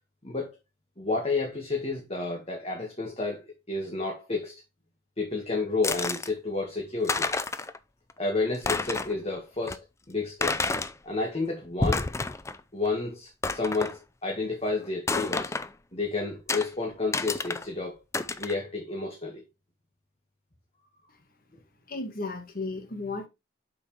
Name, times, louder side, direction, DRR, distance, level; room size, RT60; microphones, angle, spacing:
voice 1, 0.2-0.6 1.0-4.5 5.2-7.3 8.2-10.6 11.0-12.1 12.7-15.5 15.9-18.0 18.4-19.4, left 3 dB, 30° left, 1.7 m, -31 dB
sound 1, 5.8-6.3 6.8-6.9 7.0-7.8 8.1-8.2 8.5-9.2 9.7-9.8 10.4-10.9 11.6-12.6 12.8-12.9 13.4-13.9 15.1-15.7 16.5-16.7 17.1-17.7 18.1-18.5, left 3 dB, 15° left, 0.4 m, -29 dB
voice 2, 21.9-23.3, left 3 dB, 45° left, 1.5 m, -34 dB
7.8 x 5.7 x 3.3 m
head